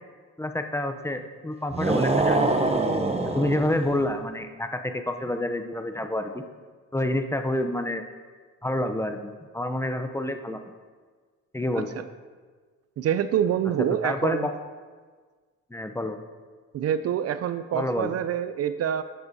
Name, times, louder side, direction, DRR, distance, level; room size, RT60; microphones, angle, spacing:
voice 1, 0.4-2.6 3.3-6.4 6.9-8.0 8.6-10.6 11.5-11.9 14.0-14.5 15.7-16.2 17.7-18.1, left 1 dB, 10° left, 7 dB, 0.6 m, -28 dB
sound 1, 1.7-4.1, right 2 dB, 20° right, 0.8 m, -24 dB
voice 2, 13.0-14.5 16.7-19.0, right 9 dB, 55° right, 12 dB, 0.4 m, -26 dB
11.0 x 8.6 x 2.7 m, 1.5 s
cardioid pair, 90°, 30 cm